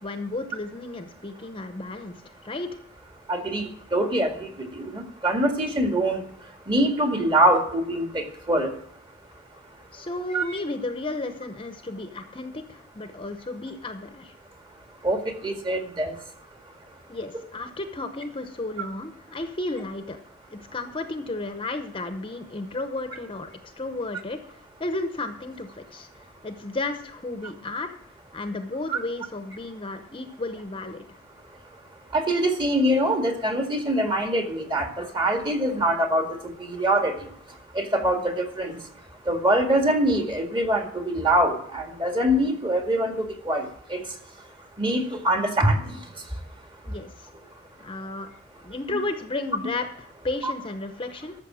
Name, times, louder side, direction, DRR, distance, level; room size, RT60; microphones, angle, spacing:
voice 1, 0.0-2.8 9.9-14.3 17.1-20.2 20.5-23.5 23.8-24.4 24.8-27.9 28.3-31.0 46.8-47.3 47.8-48.3 48.6-51.3, left 2 dB, 25° left, 7 dB, 0.8 m, -33 dB
voice 2, 3.3-6.2 6.7-8.7 10.3-10.6 15.0-16.2 28.9-29.0 32.1-37.3 37.7-38.8 39.3-44.0 44.8-46.0 50.4-50.5, right 1 dB, 25° right, 4 dB, 2.0 m, -24 dB
13.5 x 6.9 x 6.2 m, 0.69 s
head